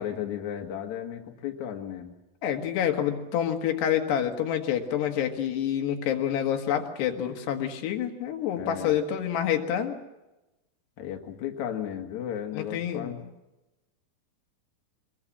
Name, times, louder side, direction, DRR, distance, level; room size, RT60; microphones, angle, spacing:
voice 1, 0.0-2.2 8.5-9.0 11.0-13.2, left 10 dB, 55° left, 4 dB, 2.7 m, -34 dB
voice 2, 2.4-10.0 12.5-13.1, left 9 dB, 85° left, 4 dB, 3.9 m, -27 dB
24.5 x 21.5 x 7.4 m, 1.0 s
omnidirectional pair, 4.7 m